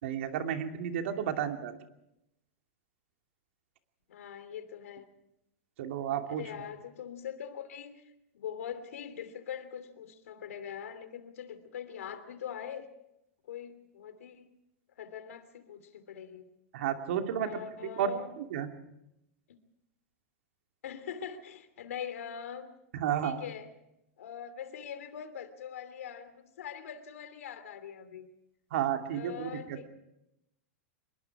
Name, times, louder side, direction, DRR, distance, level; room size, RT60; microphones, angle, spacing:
voice 1, 0.0-1.7 5.8-6.4 16.7-17.5 18.0-18.1 18.5-18.7 22.9-23.4 28.7-29.8, right 9 dB, 60° right, 5 dB, 2.7 m, -32 dB
voice 2, 4.1-5.1 6.3-8.0 8.3-12.9 13.5-14.5 15.0-16.5 17.4-18.3 19.5-19.6 20.8-22.7 23.2-23.7 24.2-28.3 29.1-29.9, left 8 dB, 90° left, 11 dB, 2.9 m, -42 dB
26.0 x 21.5 x 4.9 m, 0.83 s
supercardioid pair, 160°, 7 cm